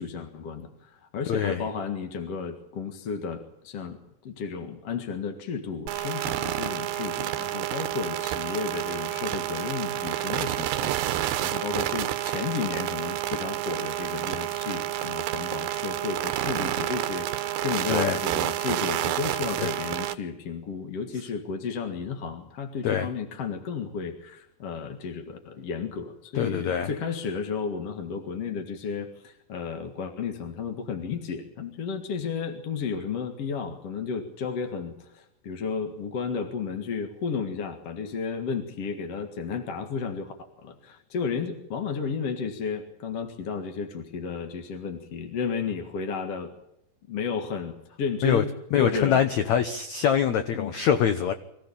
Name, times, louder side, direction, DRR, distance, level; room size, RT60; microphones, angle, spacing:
voice 1, 0.0-46.5 47.1-48.5 48.8-49.2 50.5-50.7, left 5 dB, 50° left, 5 dB, 2.2 m, -33 dB
voice 2, 1.3-1.7 17.9-18.2 19.6-19.7 22.8-23.1 26.4-26.9 48.2-48.4 48.7-51.3, left 8 dB, 80° left, 9 dB, 1.6 m, -24 dB
sound 1, 5.9-20.1, right 13 dB, 75° right, 2.6 m, -29 dB
24.5 x 15.5 x 8.7 m, 0.86 s
omnidirectional pair, 4.7 m